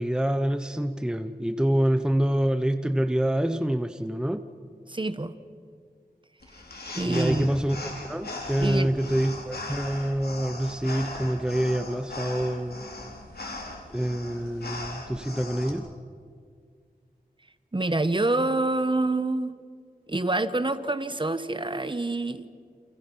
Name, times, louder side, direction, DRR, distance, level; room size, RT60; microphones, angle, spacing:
voice 1, 0.0-4.5 7.0-12.8 13.9-15.9, right 1 dB, 5° right, 9 dB, 1.0 m, -26 dB
voice 2, 4.9-5.3 6.9-7.5 8.6-8.9 17.7-19.5 20.1-22.5, right 2 dB, 30° right, 11 dB, 1.3 m, -26 dB
sound 1, 6.4-15.7, left 2 dB, 75° left, 4.0 m, -38 dB
29.5 x 29.0 x 5.7 m, 2.1 s
wide cardioid pair, 65°, 16 cm